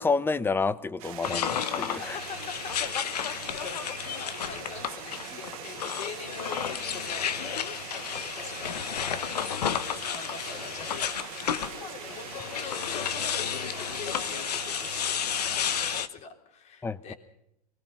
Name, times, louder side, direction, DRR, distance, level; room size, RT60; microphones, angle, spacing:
voice 1, 0.0-2.2 16.8-17.1, left 4 dB, 10° left, 17 dB, 0.9 m, -29 dB
sound 1, 1.0-16.0, right 16 dB, 65° right, 0.9 m, -42 dB
sound 2, 1.2-16.1, left 9 dB, 85° left, 1.2 m, -32 dB
voice 2, 2.0-9.4 9.7-17.1, left 6 dB, 35° left, 4 dB, 3.7 m, -44 dB
23.0 x 20.5 x 5.6 m, 0.80 s
hypercardioid pair, 115°, 20 cm